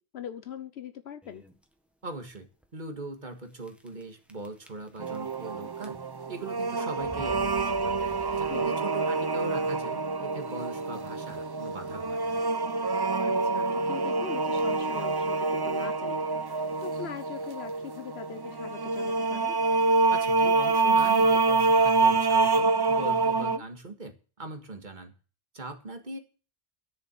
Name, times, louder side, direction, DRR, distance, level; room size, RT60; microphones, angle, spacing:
voice 1, 0.0-1.4 8.5-8.7 13.2-19.6 23.4-23.6, left 8 dB, 80° left, 11 dB, 1.1 m, -41 dB
sound 1, 1.2-1.6 2.3-2.4 2.6-2.7 3.6-4.0 4.3-5.4 5.7-6.3 7.0-8.9, right 1 dB, ahead, 1.5 m, -47 dB
voice 2, 2.0-7.5 7.8-8.0 8.4-12.4 20.1-25.1 25.5-26.2, right 2 dB, 50° right, 6 dB, 1.9 m, -40 dB
sound 2, 5.0-23.6, right 3 dB, 25° right, 0.6 m, -26 dB
12.0 x 7.0 x 7.6 m, 0.36 s
omnidirectional pair, 1.1 m